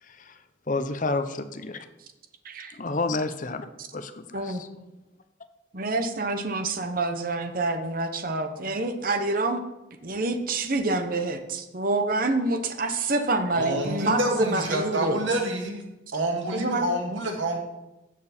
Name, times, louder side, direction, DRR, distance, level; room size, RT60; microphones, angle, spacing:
voice 1, 0.0-0.4 0.7-1.8 2.7-3.7 3.9-4.7, left 3 dB, 40° left, 9 dB, 0.7 m, -30 dB
voice 2, 5.7-9.6 10.0-15.2 16.5-16.9, right 2 dB, 45° right, 7 dB, 1.0 m, -27 dB
voice 3, 13.5-15.9 16.1-17.6, right 1 dB, 70° right, 2 dB, 2.1 m, -27 dB
15.5 x 6.9 x 4.3 m, 0.99 s
head